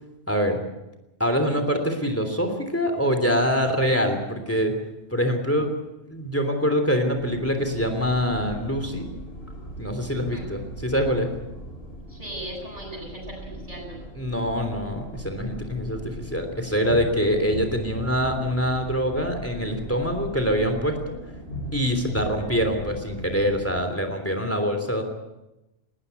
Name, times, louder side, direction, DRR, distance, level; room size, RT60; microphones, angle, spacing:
voice 1, 0.3-0.6 1.2-4.7 5.1-5.7 6.1-9.1 9.8-11.3 14.2-21.2 21.7-25.0, equal, 10° left, 6 dB, 3.2 m, -24 dB
sound 1, 7.2-23.8, equal, 50° left, 5.6 m, -39 dB
voice 2, 10.1-10.5 12.1-14.0 22.4-22.5, right 1 dB, 25° right, -6 dB, 7.7 m, -38 dB
20.0 x 19.5 x 8.3 m, 0.98 s
omnidirectional pair, 1.4 m